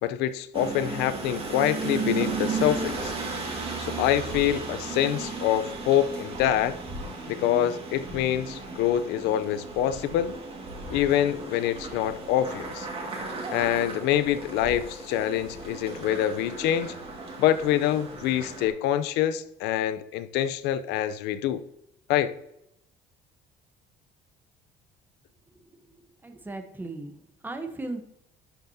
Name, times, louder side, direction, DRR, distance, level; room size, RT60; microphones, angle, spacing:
voice 1, 0.0-3.1 3.8-6.7 7.3-10.3 10.9-12.9 13.5-16.9 17.4-21.6 22.1-22.3, left 11 dB, 90° left, 14 dB, 0.7 m, -25 dB
sound 1, 0.5-18.7, right 3 dB, 30° right, 2.0 m, -35 dB
voice 2, 26.2-27.1 27.4-28.0, right 2 dB, 10° right, 6 dB, 1.0 m, -36 dB
12.0 x 5.9 x 2.8 m, 0.80 s
cardioid pair, 145°, 17 cm